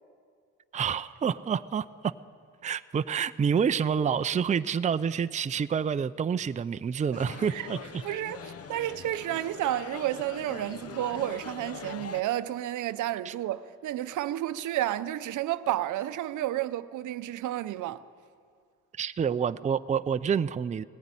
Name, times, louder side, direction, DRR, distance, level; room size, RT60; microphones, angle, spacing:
voice 1, 0.7-2.1 2.6-8.0 13.3-13.4 19.0-20.8, right 7 dB, 25° right, 0.5 m, -28 dB
sound 1, 7.1-12.2, left 6 dB, 50° left, 1.0 m, -42 dB
voice 2, 8.0-18.0, right 13 dB, 80° right, 0.7 m, -31 dB
18.5 x 15.0 x 9.7 m
cardioid pair, 90°, 30 cm